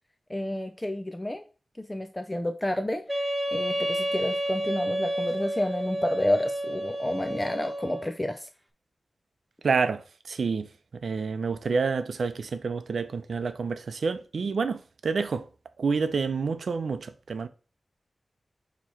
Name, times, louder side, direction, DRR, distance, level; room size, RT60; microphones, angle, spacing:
voice 1, 0.3-1.4 1.8-8.4, left 1 dB, 20° left, 0.5 m, -30 dB
Wind instrument woodwind instrument, 3.1-8.1, right 1 dB, 5° right, 1.1 m, -30 dB
voice 2, 9.6-10.0 10.3-10.7 11.0-15.5 15.8-17.5, right 5 dB, 85° right, 0.5 m, -28 dB
7.1 x 3.0 x 4.4 m
wide cardioid pair, 95°, 0 cm